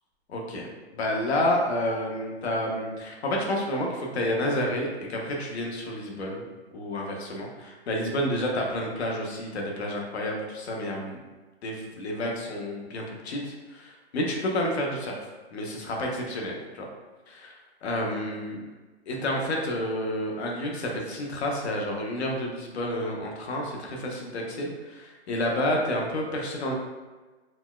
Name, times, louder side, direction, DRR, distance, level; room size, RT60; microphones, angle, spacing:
voice 1, 0.3-0.7 0.9-6.4 6.7-11.2 11.6-15.2 15.5-16.8 17.3-17.5 17.8-18.6 19.1-26.7, left 1 dB, 70° left, 0 dB, 0.8 m, -30 dB
4.2 x 2.2 x 2.2 m, 1.2 s
hypercardioid pair, 165°, 34 cm